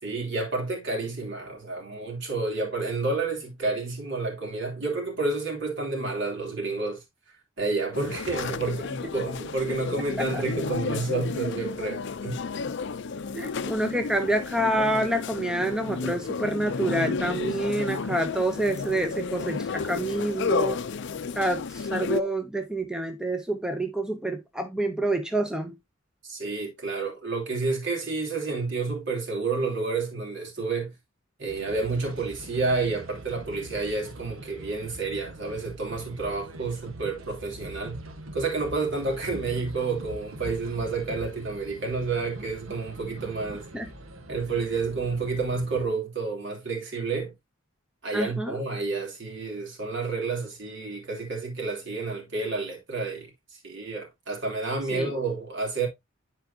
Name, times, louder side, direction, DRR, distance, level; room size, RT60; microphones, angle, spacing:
voice 1, 0.0-7.0 7.6-12.4 26.2-30.9 31.4-38.0 38.3-43.7 44.3-47.3 48.0-55.9, right 3 dB, 60° right, 3.0 m, -30 dB
sound 1, 7.9-22.2, left 5 dB, 55° left, 0.5 m, -32 dB
voice 2, 13.3-20.8 21.3-25.8 43.7-43.9 48.1-48.6 54.9-55.1, right 1 dB, 5° right, 0.6 m, -27 dB
sound 2, 31.5-45.9, right 1 dB, 80° right, 1.3 m, -43 dB
10.5 x 4.6 x 2.7 m
head